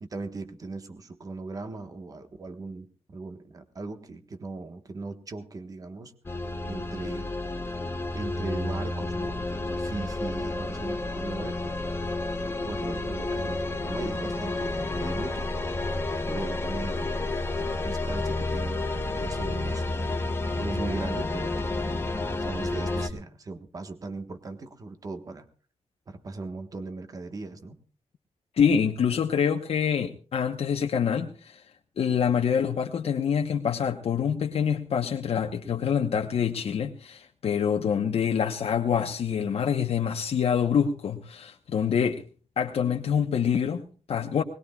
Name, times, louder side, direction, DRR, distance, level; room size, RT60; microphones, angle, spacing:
voice 1, 0.0-6.1 6.6-7.3 8.1-12.0 12.4-15.5 16.3-20.2 20.6-22.0 22.3-25.5 26.1-27.8, right 3 dB, 35° right, 8 dB, 1.3 m, -38 dB
sound 1, 6.3-23.1, left 2 dB, 20° left, 1.0 m, -30 dB
voice 2, 28.5-31.6 32.0-42.2 42.6-44.4, left 7 dB, 65° left, 3 dB, 1.0 m, -26 dB
20.5 x 20.5 x 2.4 m, 0.39 s
wide cardioid pair, 180°, 11 cm